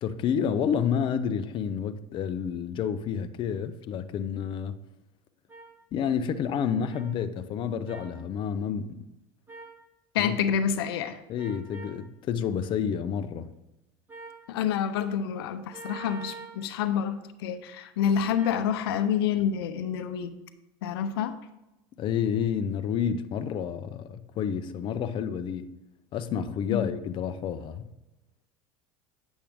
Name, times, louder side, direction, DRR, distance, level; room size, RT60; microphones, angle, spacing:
voice 1, 0.0-4.8 5.9-9.0 10.2-10.3 11.3-13.5 22.0-25.7 26.1-27.9, left 7 dB, 40° left, 0.6 m, -29 dB
sound 1, 5.5-5.7 6.9-7.0 7.9-8.1 9.5-9.8 11.4-12.0 14.1-14.4 15.7-16.6 18.3-18.6, right 3 dB, 15° right, 2.3 m, -43 dB
voice 2, 10.1-11.2 14.5-20.3 20.8-21.4 26.7-26.9, left 8 dB, 90° left, 0.7 m, -28 dB
10.0 x 7.2 x 3.6 m
supercardioid pair, 115°, 12 cm